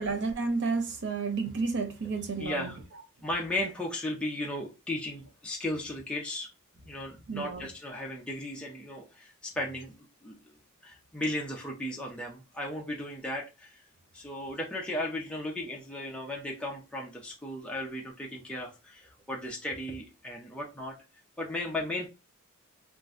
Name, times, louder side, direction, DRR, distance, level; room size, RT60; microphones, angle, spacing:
voice 1, 0.0-2.7 7.3-7.6, right 4 dB, 55° right, 0.6 m, -31 dB
voice 2, 2.4-2.8 3.2-6.5 6.9-10.5 10.8-13.8 14.1-21.0 21.4-22.1, left 1 dB, 5° left, 0.4 m, -36 dB
2.5 x 2.1 x 3.6 m
head